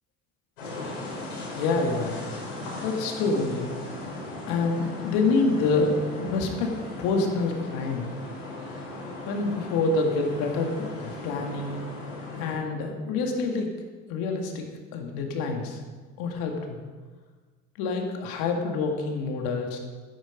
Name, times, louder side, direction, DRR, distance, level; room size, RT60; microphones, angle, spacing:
sound 1, 0.6-12.6, left 2 dB, 90° left, 4.5 m, -37 dB
voice 1, 1.5-2.2 2.8-3.7 4.5-6.7 7.0-8.1 9.3-11.8 12.4-13.7 14.1-14.7 14.9-15.8 16.2-16.8 17.8-19.8, left 3 dB, 75° left, 3 dB, 2.3 m, -27 dB
12.0 x 10.5 x 5.2 m, 1.4 s
hypercardioid pair, 65°, 37 cm